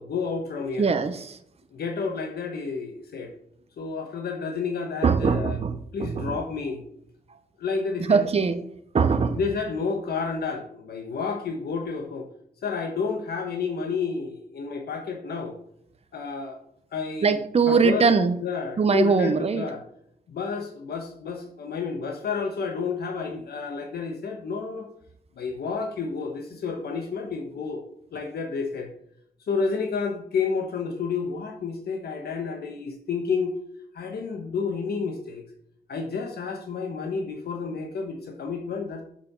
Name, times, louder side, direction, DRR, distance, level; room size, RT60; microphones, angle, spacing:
voice 1, 0.0-0.9 1.7-3.3 3.8-5.6 5.9-6.8 7.6-8.2 9.4-12.3 12.6-15.6 16.1-16.6 16.9-17.3 17.7-18.1 18.4-19.8 20.3-24.9 25.4-27.8 28.1-28.9 29.5-33.6 33.9-35.4 35.9-39.0, left 5 dB, 80° left, 3 dB, 1.1 m, -30 dB
voice 2, 0.8-1.4 5.0-6.4 7.3-7.4 8.0-8.6 8.9-9.4 17.2-18.3 18.8-19.7, right 5 dB, 40° right, 8 dB, 0.8 m, -22 dB
7.0 x 5.9 x 6.0 m, 0.70 s
wide cardioid pair, 105°, 16 cm